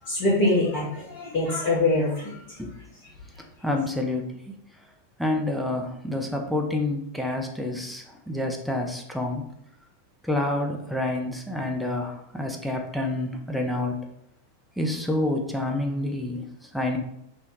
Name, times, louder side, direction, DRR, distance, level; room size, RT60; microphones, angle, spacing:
voice 1, 0.0-2.6, left 2 dB, 45° left, -6 dB, 0.7 m, -24 dB
voice 2, 3.6-4.5 5.2-9.5 10.2-14.1 14.8-17.0, left 2 dB, ahead, 1 dB, 0.3 m, -28 dB
2.3 x 2.1 x 3.0 m, 0.76 s
figure-of-eight pair, 90°, 0 cm